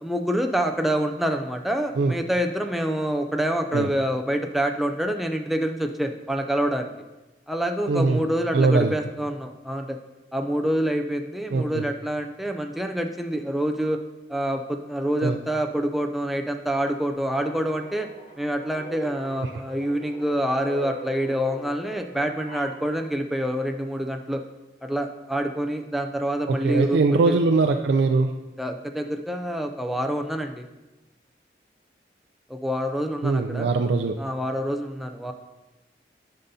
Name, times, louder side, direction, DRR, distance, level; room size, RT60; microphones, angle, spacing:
voice 1, 0.0-6.9 7.5-10.0 10.3-14.0 14.3-18.1 18.4-24.4 24.8-27.3 28.6-30.7 32.5-33.7 34.2-35.3, right 1 dB, ahead, 4 dB, 0.3 m, -26 dB
voice 2, 7.9-8.2 8.5-8.9 11.5-11.8 15.2-15.4 19.4-19.5 26.5-28.3 33.2-34.2, right 3 dB, 75° right, 4 dB, 0.4 m, -21 dB
sound 1, 17.1-22.8, right 1 dB, 45° left, 1.8 m, -41 dB
11.5 x 5.4 x 2.7 m, 1.1 s
head